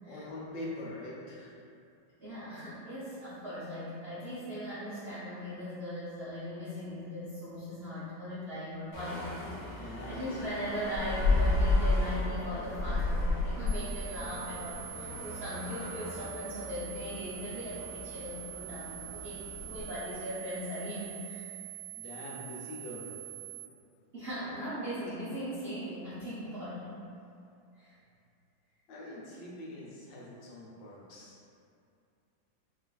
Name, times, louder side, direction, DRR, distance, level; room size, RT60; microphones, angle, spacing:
voice 1, 0.1-1.6 9.6-10.3 21.9-23.3 28.9-31.4, left 1 dB, 90° left, -5 dB, 1.4 m, -44 dB
voice 2, 2.2-21.5 24.1-27.0 27.8-27.9, equal, 80° right, -12 dB, 0.5 m, -39 dB
sound 1, 8.9-19.9, left 2 dB, 60° left, 0.9 m, -33 dB
sound 2, 13.7-23.7, right 17 dB, 55° right, 1.0 m, -45 dB
4.8 x 2.4 x 2.2 m, 2.5 s
omnidirectional pair, 1.9 m